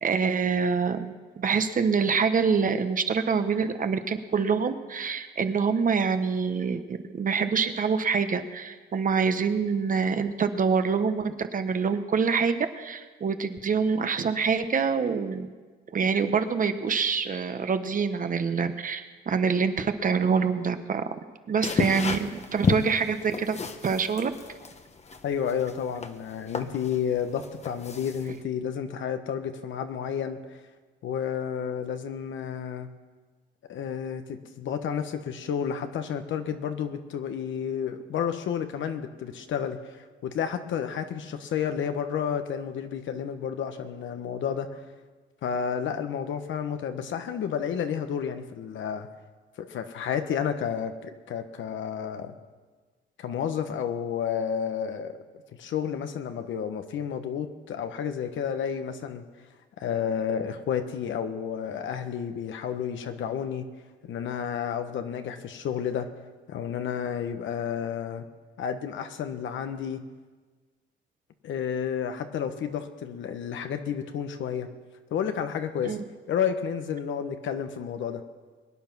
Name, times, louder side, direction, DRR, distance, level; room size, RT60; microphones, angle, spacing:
voice 1, 0.0-15.5 15.9-21.0 21.5-23.6 23.8-24.3 75.8-76.0, right 5 dB, 45° right, 9 dB, 1.1 m, -26 dB
sound 1, 21.6-28.4, left 4 dB, 35° left, 1.2 m, -32 dB
voice 2, 25.2-30.4 31.0-32.9 33.7-44.8 45.4-49.1 49.6-52.3 53.2-55.1 55.6-59.2 59.8-63.7 64.0-66.1 66.5-68.2 68.6-70.0 71.4-74.7 75.1-76.0 76.3-78.2, left 8 dB, 75° left, 8 dB, 1.3 m, -31 dB
22.5 x 9.5 x 6.1 m, 1.4 s
cardioid pair, 90°, 20 cm